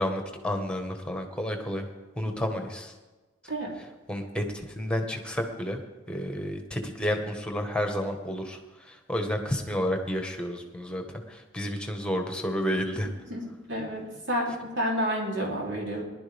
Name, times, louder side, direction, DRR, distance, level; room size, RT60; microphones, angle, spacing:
voice 1, 0.0-1.9 2.2-2.9 4.1-4.4 4.8-5.8 6.1-8.6 8.9-11.0 11.3-13.1, equal, 5° left, 4 dB, 1.4 m, -30 dB
voice 2, 13.3-16.0, equal, 65° right, -2 dB, 3.3 m, -30 dB
19.5 x 11.5 x 3.5 m, 1.2 s
head